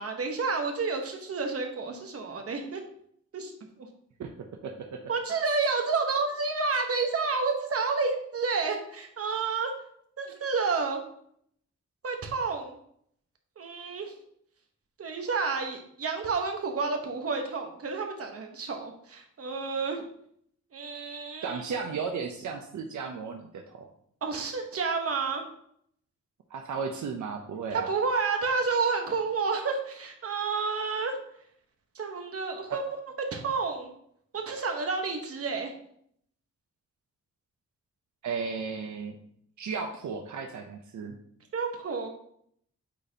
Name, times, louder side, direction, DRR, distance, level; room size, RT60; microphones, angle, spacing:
voice 1, 0.0-2.8 3.3-3.5 5.1-9.7 10.2-11.0 12.0-12.8 13.6-14.1 15.0-20.0 20.7-21.7 24.2-25.4 27.7-31.2 31.9-32.8 33.3-33.9 34.3-35.7 41.5-42.1, right 4 dB, 55° right, 4 dB, 1.0 m, -30 dB
voice 2, 4.6-5.0 21.4-23.9 26.5-27.9 32.7-32.8 38.2-39.2 39.6-41.1, right 5 dB, 80° right, 3 dB, 0.6 m, -34 dB
8.2 x 4.2 x 2.8 m, 0.68 s
wide cardioid pair, 130°, 29 cm